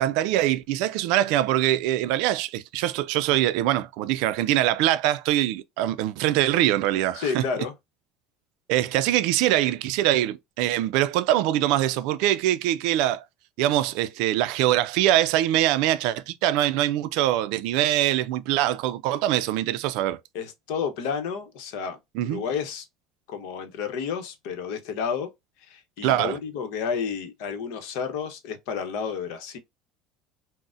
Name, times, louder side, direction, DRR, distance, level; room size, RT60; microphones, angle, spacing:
voice 1, 0.0-7.4 8.7-13.2 13.6-20.2 22.1-22.4 26.0-26.4, right 13 dB, 75° right, 0.3 m, -23 dB
voice 2, 7.1-7.7 20.3-22.9 23.3-25.3 25.7-29.6, left 6 dB, 75° left, 0.8 m, -31 dB
3.8 x 2.1 x 2.5 m
supercardioid pair, 120°, 0 cm